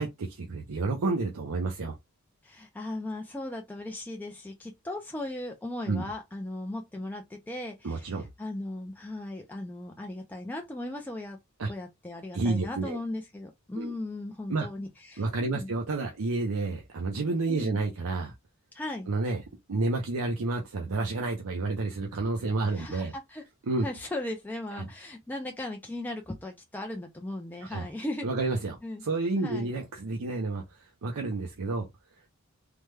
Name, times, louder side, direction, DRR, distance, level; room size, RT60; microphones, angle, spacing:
voice 1, 0.0-1.9 5.9-6.1 7.8-8.3 11.6-11.7 12.3-13.0 13.8-13.9 14.5-14.7 15.2-18.3 19.1-19.4 19.7-23.1 23.7-23.9 24.8-24.9 27.6-27.9 28.2-31.9, right 3 dB, 80° right, 0.6 m, -30 dB
voice 2, 2.4-11.4 11.7-15.7 17.5-17.8 18.7-19.1 22.7-23.4 23.8-28.3 28.8-29.0 29.4-29.7, left 1 dB, 10° left, 0.4 m, -37 dB
3.3 x 2.1 x 3.1 m
head